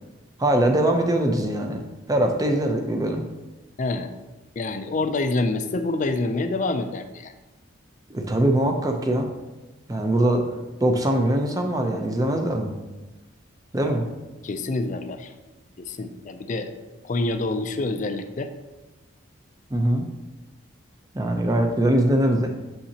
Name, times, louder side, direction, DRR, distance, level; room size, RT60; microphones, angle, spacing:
voice 1, 0.4-1.8 2.1-3.2 8.1-9.3 9.9-10.4 10.8-12.8 13.7-14.0 19.7-20.0 21.1-22.5, right 1 dB, 20° right, 4 dB, 0.5 m, -22 dB
voice 2, 3.8-4.1 4.6-7.3 14.4-15.3 15.8-16.7 17.0-18.5, left 2 dB, 40° left, 8 dB, 0.4 m, -27 dB
6.8 x 5.6 x 2.8 m, 1.1 s
head